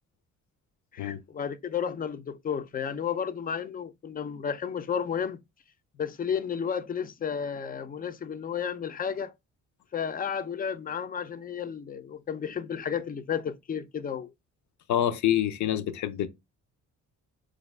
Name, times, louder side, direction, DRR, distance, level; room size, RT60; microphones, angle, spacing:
voice 1, 0.9-5.4 6.0-9.3 9.9-14.3, left 7 dB, 30° left, 0.5 m, -32 dB
voice 2, 14.9-16.3, left 11 dB, 70° left, 0.6 m, -26 dB
4.5 x 2.5 x 3.2 m
cardioid pair, 90°, 30 cm